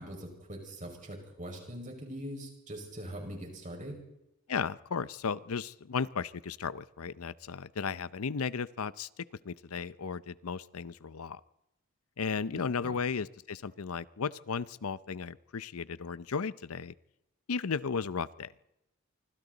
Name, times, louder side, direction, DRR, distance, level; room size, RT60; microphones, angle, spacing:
voice 1, 0.0-4.0 12.5-13.0, equal, 35° right, 2 dB, 5.5 m, -42 dB
voice 2, 4.5-9.1 9.4-11.4 12.2-16.9 17.5-18.5, left 5 dB, 85° left, 17 dB, 0.6 m, -35 dB
27.0 x 25.0 x 4.0 m, 0.87 s
head